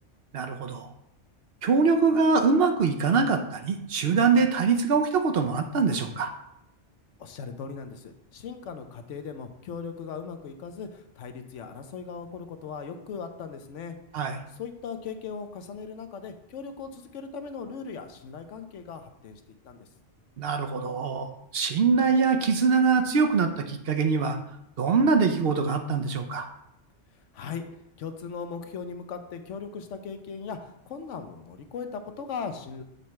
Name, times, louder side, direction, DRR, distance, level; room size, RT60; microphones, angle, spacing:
voice 1, 0.3-0.9 1.6-6.3 14.1-14.4 20.4-24.4 24.8-26.5, right 5 dB, 60° right, 5 dB, 0.8 m, -23 dB
voice 2, 7.2-14.0 14.5-19.9 27.3-27.6 28.0-32.8, left 6 dB, 85° left, 7 dB, 1.0 m, -38 dB
6.6 x 3.2 x 5.7 m, 0.78 s
omnidirectional pair, 1.2 m